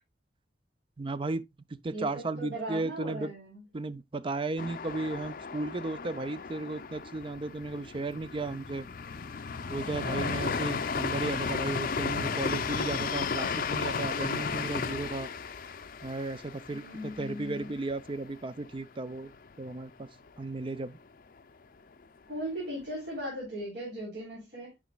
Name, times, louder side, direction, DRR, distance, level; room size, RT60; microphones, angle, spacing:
voice 1, 1.0-1.4 1.8-3.3 3.7-8.9 9.7-15.3 16.0-19.3 19.6-20.1 20.4-21.0, right 2 dB, 30° right, 0.5 m, -35 dB
voice 2, 1.9-3.6 16.7-17.7 22.3-24.7, equal, 60° right, 3.6 m, -38 dB
sound 1, 4.6-18.3 18.6-18.7 19.1-19.7, left 5 dB, 50° left, 0.5 m, -34 dB
9.7 x 5.1 x 2.3 m
head